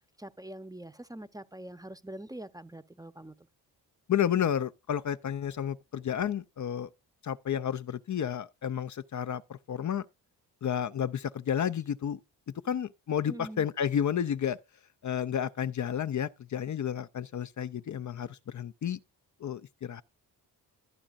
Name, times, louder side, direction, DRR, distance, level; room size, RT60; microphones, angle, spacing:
voice 1, 0.2-3.3 13.3-13.6, right 1 dB, 10° right, 0.9 m, -44 dB
voice 2, 4.1-6.9 7.2-10.0 10.6-12.2 12.6-14.6 15.0-19.0 19.4-20.0, left 9 dB, 45° left, 0.7 m, -31 dB
12.5 x 8.7 x 2.5 m
cardioid pair, 85°, 40 cm